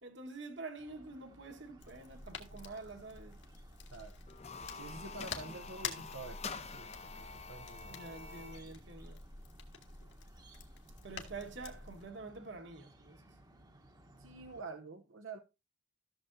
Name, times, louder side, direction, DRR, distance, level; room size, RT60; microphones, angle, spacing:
voice 1, 0.0-3.4 7.9-9.2 11.0-13.2, right 3 dB, 60° right, 1.5 m, -47 dB
sound 1, 0.8-14.6, right 1 dB, 20° right, 1.0 m, -61 dB
sound 2, 1.8-12.0, left 5 dB, 60° left, 1.7 m, -49 dB
sound 3, 4.3-8.7, left 5 dB, 30° left, 0.6 m, -47 dB
voice 2, 4.7-8.0 14.2-15.4, right 3 dB, 80° right, 0.8 m, -48 dB
14.0 x 6.9 x 2.6 m
head